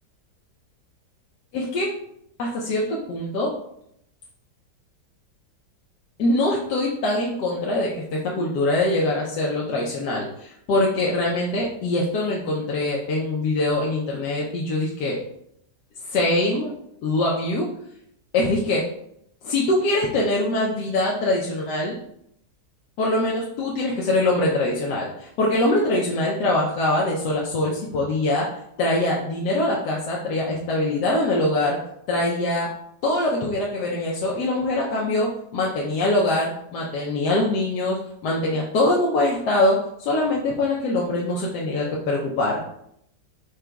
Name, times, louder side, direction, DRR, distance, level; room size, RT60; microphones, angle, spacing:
voice 1, 1.5-1.9 2.4-3.5 6.2-15.2 16.0-16.7 17.0-17.7 18.3-18.8 19.4-22.0 23.0-28.5 28.8-31.8 32.1-32.7 33.0-42.6, left 2 dB, 70° left, -3 dB, 1.2 m, -23 dB
5.0 x 2.2 x 4.5 m, 0.74 s
omnidirectional pair, 1.9 m